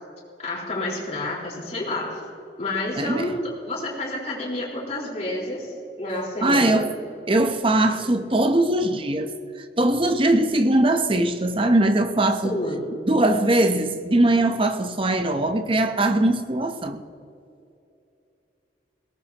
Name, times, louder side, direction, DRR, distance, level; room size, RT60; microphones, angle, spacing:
voice 1, 0.4-2.2 2.6-6.9 12.4-12.8, left 1 dB, 40° left, 4.3 m, -29 dB
voice 2, 3.0-3.3 6.4-6.9 7.3-9.4 9.8-12.6 13.0-17.0, right 1 dB, 30° right, 0.9 m, -21 dB
21.5 x 18.0 x 3.0 m
head